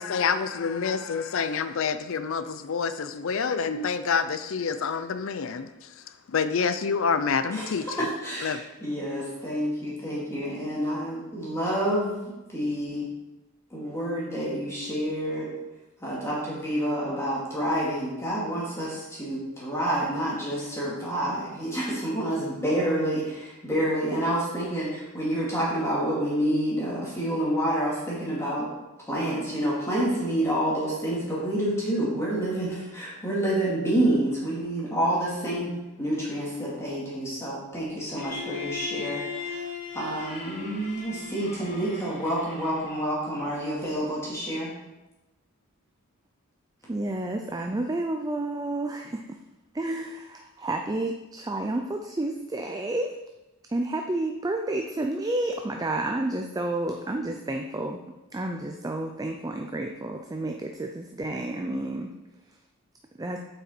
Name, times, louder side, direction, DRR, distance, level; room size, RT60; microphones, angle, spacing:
voice 1, 0.0-8.1 8.4-8.6, left 5 dB, 60° left, 12 dB, 0.5 m, -28 dB
voice 2, 8.0-13.1 13.7-15.5 16.0-28.7 29.1-35.7 36.0-39.6 39.9-44.7, right 1 dB, 15° left, -7 dB, 2.2 m, -28 dB
Bowed string instrument, 38.2-43.1, left 6 dB, 35° left, 2.6 m, -38 dB
voice 3, 46.9-49.4 49.7-53.2 53.7-58.0 58.3-62.1 63.2-63.4, right 2 dB, 15° right, 3 dB, 0.4 m, -30 dB
7.9 x 5.6 x 4.4 m, 1.0 s
head